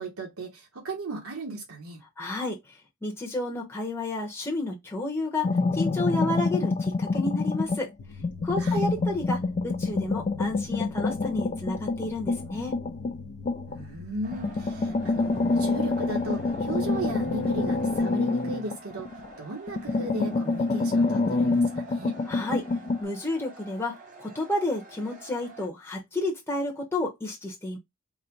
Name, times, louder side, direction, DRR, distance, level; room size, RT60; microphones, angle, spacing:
voice 1, 0.0-2.0 8.6-8.9 13.7-22.2, right 2 dB, 80° right, 1.0 m, -36 dB
voice 2, 2.2-7.9 8.4-12.7 22.3-22.7 23.0-27.8, left 2 dB, 10° left, 0.8 m, -31 dB
sound 1, 5.4-7.9 8.2-13.8 14.3-19.3 19.7-23.0, left 3 dB, 30° left, 0.3 m, -27 dB
sound 2, 8.0-18.0, left 4 dB, 80° left, 0.6 m, -44 dB
sound 3, 14.2-25.7, right 2 dB, 40° right, 0.9 m, -48 dB
3.8 x 2.1 x 4.3 m
head